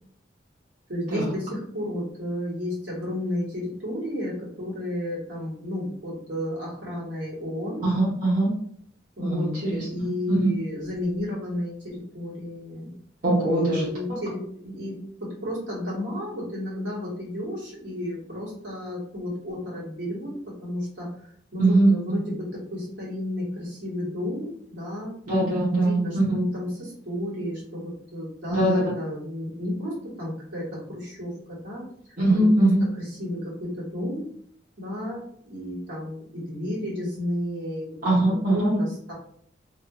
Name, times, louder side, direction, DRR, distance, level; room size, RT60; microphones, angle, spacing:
voice 1, 0.9-7.9 9.2-12.9 13.5-21.3 21.5-25.1 25.7-31.8 32.6-34.3 34.8-38.0 38.2-39.1, left 1 dB, 75° right, -6 dB, 1.4 m, -32 dB
voice 2, 7.8-8.5 9.2-10.5 13.2-14.2 21.6-21.9 25.3-26.4 28.5-28.9 32.2-32.8 38.0-38.7, right 1 dB, 45° right, -9 dB, 1.0 m, -22 dB
2.7 x 2.7 x 2.4 m, 0.64 s
head